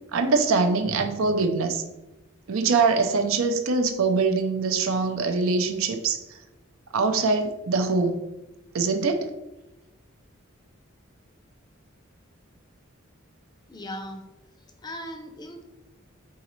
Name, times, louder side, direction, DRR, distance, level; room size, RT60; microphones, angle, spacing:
voice 1, 0.1-1.8 2.5-6.2 6.9-8.1 8.7-9.3, right 4 dB, 80° right, 6 dB, 0.5 m, -23 dB
voice 2, 13.7-14.2 14.8-15.6, equal, 20° left, 4 dB, 0.5 m, -37 dB
4.0 x 3.8 x 3.0 m, 1.0 s
head